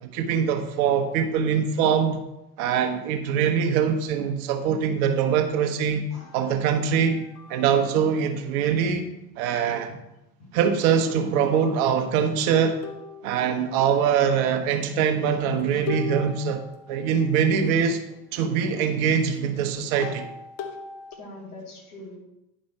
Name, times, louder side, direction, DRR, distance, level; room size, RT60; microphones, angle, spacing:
voice 1, 0.0-2.2 2.6-6.0 6.3-7.2 7.5-9.9 10.5-12.8 13.2-16.6 16.9-18.0 18.3-20.3, right 7 dB, 55° right, 6 dB, 1.2 m, -23 dB
sound 1, 6.2-8.0 11.1-11.3 11.6-11.8 12.8-14.8 15.9-18.8 19.2-21.1, left 5 dB, 50° left, 1.2 m, -40 dB
voice 2, 21.1-22.2, left 2 dB, 65° left, -3 dB, 3.0 m, -43 dB
10.0 x 5.3 x 4.4 m, 0.89 s
figure-of-eight pair, 65°, 48 cm